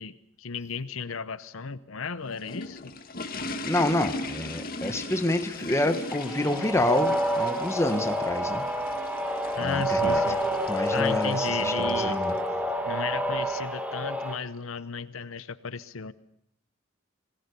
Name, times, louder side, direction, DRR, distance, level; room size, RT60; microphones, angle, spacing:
voice 1, 0.0-2.9 9.5-10.4 10.9-12.2 12.8-16.1, left 5 dB, 80° left, 15 dB, 0.9 m, -34 dB
sound 1, 2.1-12.4, left 2 dB, 45° left, 2.0 m, -39 dB
voice 2, 3.6-8.6 9.6-10.2 10.7-12.3, left 1 dB, 15° left, 7 dB, 1.8 m, -28 dB
sound 2, 6.1-14.4, right 1 dB, 5° right, 2.4 m, -28 dB
27.5 x 20.0 x 6.9 m, 0.78 s
head